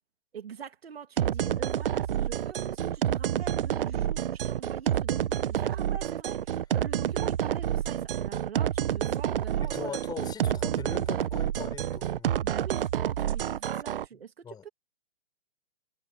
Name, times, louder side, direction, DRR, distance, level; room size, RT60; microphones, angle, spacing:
voice 1, 0.3-10.0 12.4-14.7, right 7 dB, 80° right, 2.8 m, -44 dB
sound 1, 1.2-14.0, right 10 dB, 65° right, 1.1 m, -29 dB
voice 2, 9.6-12.4 14.4-14.6, left 7 dB, 15° left, 5.3 m, -40 dB
hypercardioid pair, 140°, 30 cm